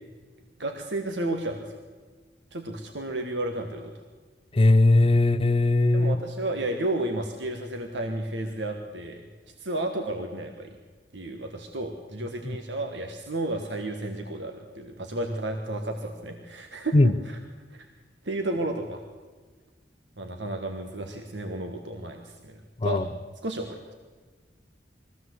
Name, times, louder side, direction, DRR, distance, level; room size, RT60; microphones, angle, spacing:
voice 1, 0.6-1.8 2.5-4.0 5.9-9.2 9.6-10.7 11.1-17.4 17.7-17.9 18.2-19.0 20.2-22.5 22.8-23.1 23.4-23.9, right 1 dB, 75° right, 4 dB, 1.5 m, -32 dB
voice 2, 4.5-6.2 12.4-12.6 16.9-17.1 22.8-23.0, left 2 dB, 30° left, 12 dB, 0.5 m, -19 dB
21.0 x 15.5 x 8.0 m, 1.4 s
head